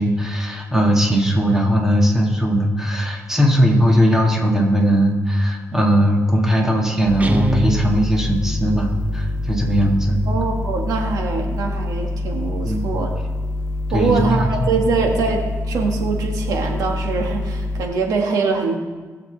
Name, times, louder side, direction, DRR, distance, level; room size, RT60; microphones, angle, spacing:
voice 1, 0.0-10.2 12.6-12.9 13.9-14.7, equal, 10° right, -1 dB, 2.0 m, -18 dB
sound 1, 7.0-17.8, left 2 dB, 30° left, 1.9 m, -26 dB
Guitar, 7.2-8.5, equal, 25° right, 0.9 m, -24 dB
voice 2, 10.3-13.2 13.9-18.8, right 4 dB, 80° right, 2 dB, 1.8 m, -23 dB
20.0 x 7.2 x 3.4 m, 1.3 s
cardioid pair, 115°, 6 cm